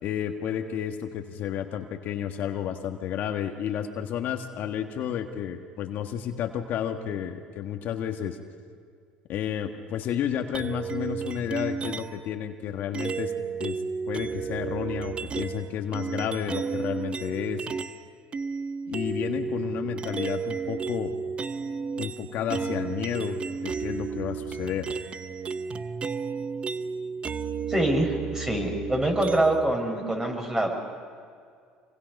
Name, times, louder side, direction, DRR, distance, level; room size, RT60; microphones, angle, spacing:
voice 1, 0.0-8.4 9.3-13.3 13.6-13.8 14.1-17.7 18.9-21.1 22.0-23.4 23.6-24.9, left 9 dB, 60° left, 4 dB, 1.6 m, -31 dB
sound 1, 10.5-12.3 12.9-18.0 18.3-29.8, right 5 dB, 35° right, 0.9 m, -32 dB
voice 2, 27.7-30.7, right 1 dB, 15° right, 2 dB, 5.8 m, -25 dB
26.5 x 24.5 x 5.4 m, 2.1 s
supercardioid pair, 90°, 3 cm